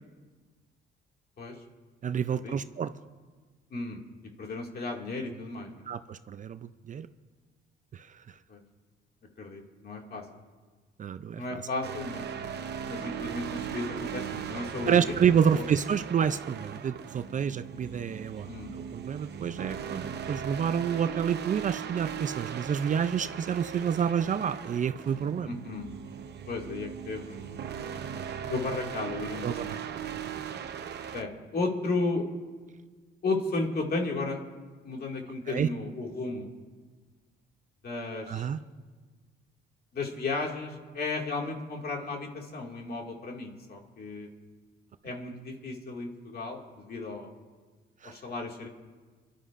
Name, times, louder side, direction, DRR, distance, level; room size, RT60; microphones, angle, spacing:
voice 1, 2.0-2.9 5.9-7.1 7.9-8.2 11.0-11.6 14.9-25.5 28.2-28.3 29.4-30.0 30.3-30.4 35.5-35.7 38.2-38.6 48.0-48.1, right 8 dB, 40° right, 12 dB, 0.4 m, -29 dB
voice 2, 4.4-5.8 8.5-8.6 9.4-10.2 11.4-12.3 12.9-15.0 15.5-15.6 18.5-18.7 25.4-25.9 26.5-27.4 28.5-29.8 31.1-32.2 33.2-34.4 34.8-36.5 37.8-38.5 39.9-44.3 45.0-46.6 46.9-47.3 48.0-48.7, left 3 dB, 50° left, 1 dB, 2.2 m, -34 dB
sound 1, 11.8-31.2, right 8 dB, 60° right, 0.9 m, -38 dB
30.0 x 11.5 x 2.5 m, 1.4 s
cardioid pair, 90°, 20 cm